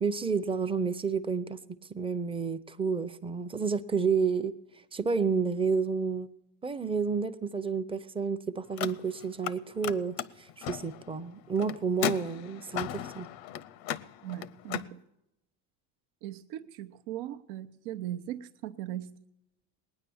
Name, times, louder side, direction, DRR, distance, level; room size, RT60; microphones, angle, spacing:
voice 1, 0.0-1.6 1.9-4.5 4.9-6.3 6.6-13.3, right 5 dB, 10° right, 11 dB, 0.5 m, -30 dB
Car, 8.7-9.6 9.8-14.9, left 11 dB, 85° left, 0.7 m, -36 dB
voice 2, 14.2-15.0 16.2-19.2, right 12 dB, 80° right, 9 dB, 0.8 m, -39 dB
19.5 x 9.7 x 7.0 m, 0.89 s
cardioid pair, 120°, 48 cm